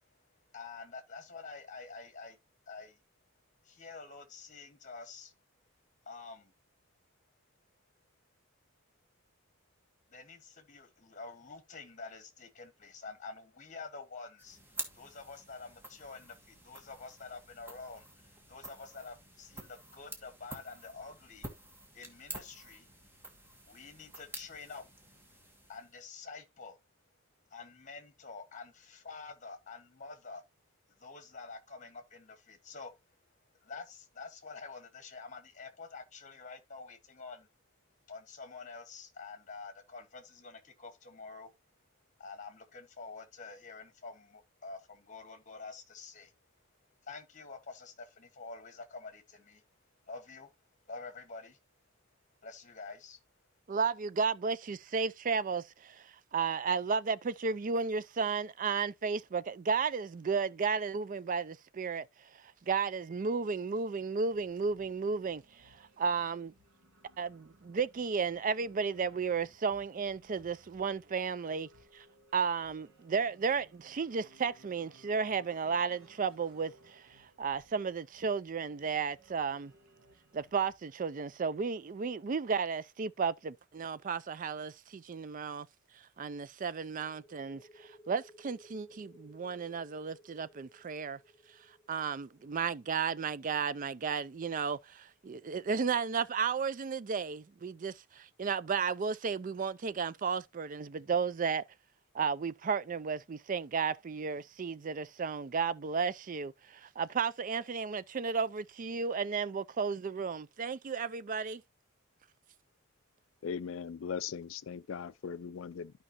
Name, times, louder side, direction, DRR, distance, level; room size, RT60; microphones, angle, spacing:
voice 1, 0.5-2.4 2.7-3.0 3.6-5.3 6.0-6.5 10.1-14.6 14.9-21.5 21.9-22.9 23.7-24.8 25.7-26.8 27.5-30.4 30.9-32.9 33.6-37.5 38.1-41.5 42.2-46.3 47.0-49.6 50.1-50.5 50.9-51.6 52.4-53.2, left 4 dB, 35° left, 1.5 m, -48 dB
sound 1, 14.4-26.1, right 1 dB, 10° right, 1.4 m, -49 dB
voice 2, 53.7-62.1 62.7-66.5 67.2-72.0 72.3-79.7 80.3-85.7 86.2-91.2 91.9-101.6 102.1-111.6, right 5 dB, 40° right, 0.4 m, -33 dB
sound 2, 64.2-80.8, right 1 dB, 80° right, 1.7 m, -63 dB
sound 3, 87.1-94.3, left 1 dB, 10° left, 3.2 m, -60 dB
voice 3, 113.4-115.9, left 6 dB, 65° left, 0.4 m, -39 dB
12.5 x 5.3 x 2.9 m
head